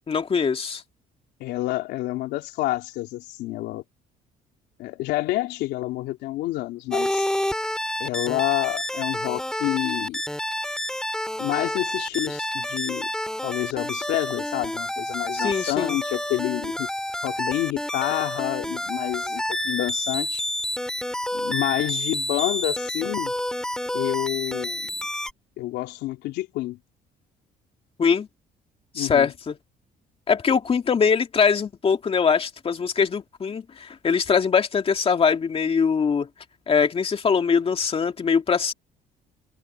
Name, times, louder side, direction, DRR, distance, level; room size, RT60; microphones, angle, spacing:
voice 1, 0.1-0.8 15.3-16.0 28.0-28.3 29.0-29.5 30.3-36.3 36.7-38.7, left 6 dB, 35° left, 2.4 m, -22 dB
voice 2, 1.4-3.8 4.8-7.3 8.0-10.2 11.4-13.1 13.4-16.9 17.2-20.4 21.3-23.3 23.9-25.0 25.6-26.8 28.9-29.3, left 17 dB, 90° left, 3.3 m, -28 dB
sound 1, 6.9-25.3, left 1 dB, 5° left, 3.2 m, -29 dB
cardioid pair, 110°, 17 cm